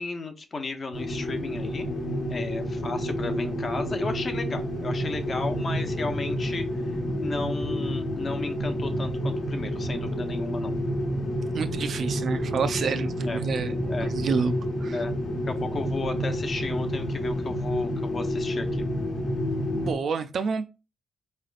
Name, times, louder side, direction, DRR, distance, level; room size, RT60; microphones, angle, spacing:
voice 1, 0.0-1.9 2.3-6.6 6.9-10.7 13.2-13.4 13.9-14.1 14.9-15.1 15.5-18.8, left 3 dB, 35° left, 0.6 m, -34 dB
sound 1, 0.9-19.9, equal, 55° left, 1.0 m, -29 dB
voice 2, 11.5-14.5 14.8-15.0 19.7-20.7, right 5 dB, 50° right, 0.3 m, -29 dB
4.7 x 3.3 x 2.4 m
wide cardioid pair, 165°, 0 cm